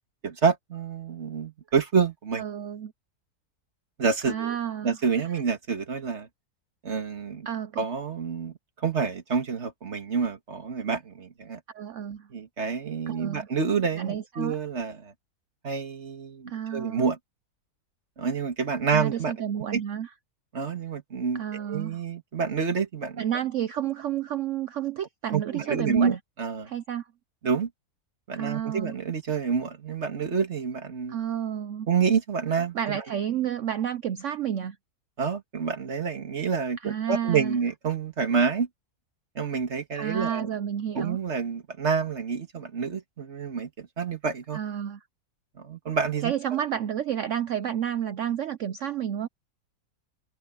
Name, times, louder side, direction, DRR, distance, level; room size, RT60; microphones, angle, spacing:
voice 1, 0.2-2.4 4.0-4.5 4.8-6.3 6.8-7.5 7.8-11.6 12.3-15.1 15.6-17.2 18.2-19.3 19.7-19.8 20.5-23.2 25.3-26.7 27.4-27.7 28.3-31.2 31.9-33.0 35.2-38.7 39.4-40.5 41.0-44.6 45.6-46.3, right 6 dB, 45° right, 2.1 m, -28 dB
voice 2, 2.4-2.9 4.3-5.0 7.5-7.8 11.7-12.3 13.1-13.5 14.0-14.6 16.5-17.1 18.9-20.1 21.3-22.0 23.2-26.2 26.6-27.0 28.3-29.0 31.1-31.9 32.7-34.8 36.8-37.6 40.0-41.2 44.5-45.0 46.2-49.3, right 9 dB, 60° right, 0.8 m, -30 dB
omnidirectional pair, 1.7 m